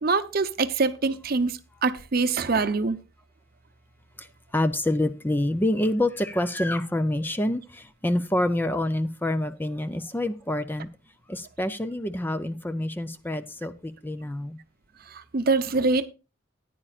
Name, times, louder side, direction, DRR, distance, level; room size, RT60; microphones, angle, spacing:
voice 1, 0.0-3.0 15.1-16.1, right 4 dB, 50° right, 0.7 m, -24 dB
voice 2, 4.2-10.9 11.3-14.6, left 1 dB, 10° left, 0.4 m, -27 dB
14.0 x 10.0 x 2.4 m
head